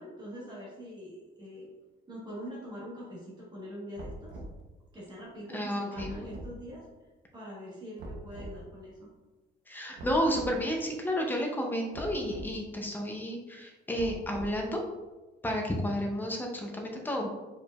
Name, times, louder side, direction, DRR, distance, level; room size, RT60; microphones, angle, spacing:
voice 1, 0.0-1.7 2.1-4.4 4.9-6.9 7.3-9.1, equal, 20° right, -6 dB, 1.4 m, -44 dB
sound 1, 4.0-4.6 6.0-6.5 8.0-8.6 10.0-10.6 11.9-12.5 14.0-14.7, right 1 dB, 85° right, 0.9 m, -42 dB
voice 2, 5.5-6.3 9.7-14.8 15.4-17.3, equal, 10° left, 1 dB, 0.6 m, -31 dB
4.7 x 4.6 x 2.4 m, 1.2 s
cardioid pair, 160°, 20 cm